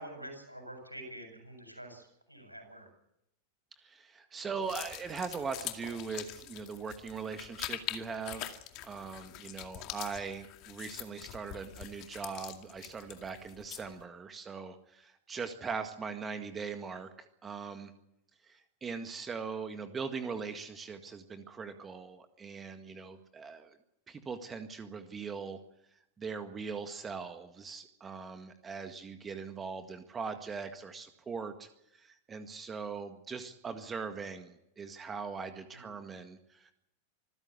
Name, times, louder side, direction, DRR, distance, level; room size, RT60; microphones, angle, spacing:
voice 1, 0.0-2.9 35.7-35.9, right 1 dB, 90° right, 4 dB, 7.7 m, -47 dB
voice 2, 3.8-17.9 18.4-23.8 24.1-25.6 26.2-36.7, right 5 dB, 20° right, 8 dB, 1.8 m, -41 dB
sound 1, 4.6-14.0, left 15 dB, 40° left, 2.2 m, -44 dB
26.0 x 14.5 x 8.4 m, 0.81 s
figure-of-eight pair, 90°, 0 cm